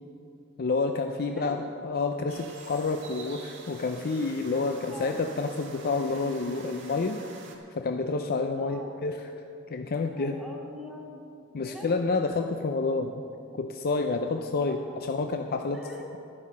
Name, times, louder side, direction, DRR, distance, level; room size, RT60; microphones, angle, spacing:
voice 1, 0.6-7.2 7.7-9.2 9.7-10.4 11.5-13.2 13.5-15.8, left 3 dB, 50° left, 5 dB, 0.5 m, -29 dB
voice 2, 1.2-1.6 4.5-5.2 8.6-9.0 9.9-11.2 11.6-12.0 14.6-15.0 15.6-16.2, left 1 dB, ahead, -4 dB, 1.7 m, -44 dB
sound 1, 2.3-7.6, right 4 dB, 60° right, 1.6 m, -48 dB
12.0 x 9.7 x 6.1 m, 2.6 s
head